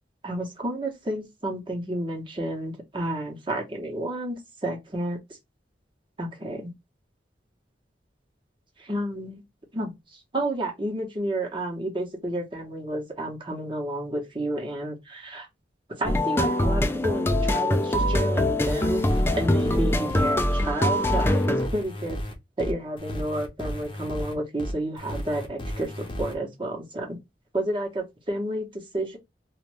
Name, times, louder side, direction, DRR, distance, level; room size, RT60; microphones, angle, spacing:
voice 1, 0.2-5.2 6.2-6.7 8.8-9.4 9.7-15.5 15.9-19.1 19.3-22.2 22.6-27.2 27.5-29.2, right 1 dB, 30° right, 1.0 m, -31 dB
sound 1, 16.0-21.7, left 1 dB, 15° left, 0.4 m, -23 dB
sound 2, 18.6-26.3, equal, 30° left, 0.7 m, -34 dB
2.6 x 2.4 x 3.1 m
head